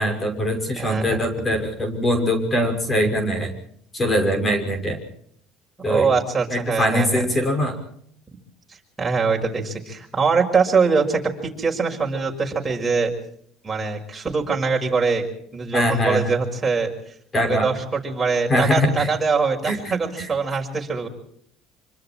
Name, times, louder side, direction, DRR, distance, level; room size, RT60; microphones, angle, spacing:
voice 1, 0.0-3.5 3.9-5.0 5.8-6.1 6.5-7.7 15.7-16.3 17.3-17.7 18.5-19.1 19.6-19.9 20.2-20.3, equal, 25° left, 6 dB, 6.0 m, -22 dB
voice 2, 0.7-1.2 5.8-7.2 9.0-13.1 13.6-15.2 15.5-16.9 17.4-21.1, right 4 dB, 15° right, 0 dB, 6.3 m, -23 dB
26.0 x 25.5 x 4.6 m, 0.65 s
cardioid pair, 115°, 0 cm